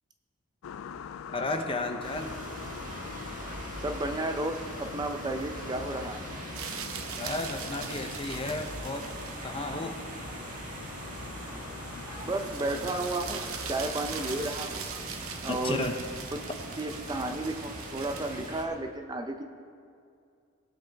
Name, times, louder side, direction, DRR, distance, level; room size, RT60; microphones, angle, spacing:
sound 1, 0.6-14.5, left 7 dB, 70° left, 0.3 m, -44 dB
voice 1, 1.3-2.4 7.2-9.1 9.4-10.0 15.5-16.0, left 2 dB, 25° left, 5 dB, 0.7 m, -33 dB
sound 2, 2.0-18.7, right 1 dB, 40° right, 1.4 m, -41 dB
voice 2, 3.8-6.2 12.2-14.9 15.4-15.8 16.8-19.4, right 2 dB, 20° right, 5 dB, 0.5 m, -33 dB
sound 3, 6.5-18.5, right 7 dB, 80° right, 0.8 m, -42 dB
18.5 x 8.1 x 3.4 m, 2.4 s
head